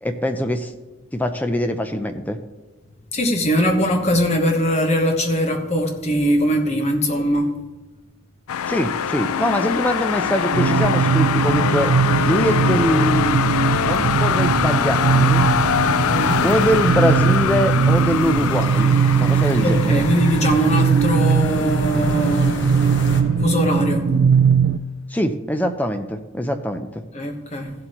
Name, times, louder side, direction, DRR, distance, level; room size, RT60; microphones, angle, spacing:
voice 1, 0.0-0.7 1.1-2.4 8.7-11.9 12.2-13.4 13.8-15.5 16.4-20.1 25.1-27.0, equal, 5° left, 7 dB, 0.5 m, -23 dB
voice 2, 3.1-7.5 16.1-16.5 19.6-22.6 23.4-24.1 27.1-27.7, equal, 30° left, 3 dB, 1.1 m, -21 dB
sound 1, 8.5-23.3, left 8 dB, 85° left, 0.4 m, -24 dB
sound 2, 10.5-24.8, right 6 dB, 50° right, 0.3 m, -19 dB
sound 3, 14.9-23.2, left 2 dB, 55° left, 1.1 m, -33 dB
15.5 x 7.7 x 3.0 m, 1.1 s
head